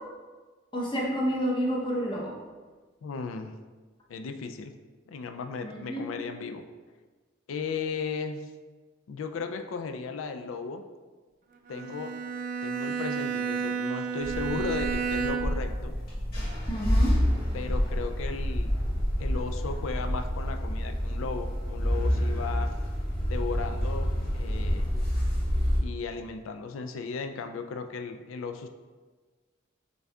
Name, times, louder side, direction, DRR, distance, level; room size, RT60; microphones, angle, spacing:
voice 1, 0.7-2.3 5.6-6.0 16.7-17.1, equal, 25° left, -3 dB, 0.8 m, -29 dB
voice 2, 3.0-3.5 4.1-4.7 5.1-6.6 7.5-8.5 9.1-10.8 11.7-12.2 12.6-15.9 17.5-18.7 19.2-22.7 23.3-24.9 25.8-28.7, left 4 dB, 80° left, 7 dB, 0.3 m, -36 dB
Bowed string instrument, 11.7-15.7, right 6 dB, 45° right, 0.3 m, -31 dB
sound 1, 14.2-25.8, equal, 50° left, 1.3 m, -28 dB
6.6 x 2.7 x 2.3 m, 1.4 s
head